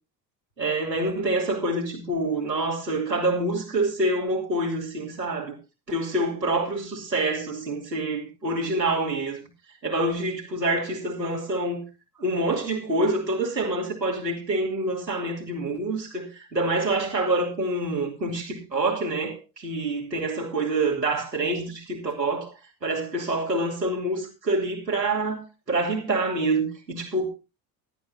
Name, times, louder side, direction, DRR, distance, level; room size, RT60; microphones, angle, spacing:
voice 1, 0.6-5.6 5.9-9.4 9.8-11.8 12.2-22.5 22.8-27.3, right 2 dB, 90° right, 2.9 m, -26 dB
16.5 x 12.0 x 2.8 m
figure-of-eight pair, 55°, 49 cm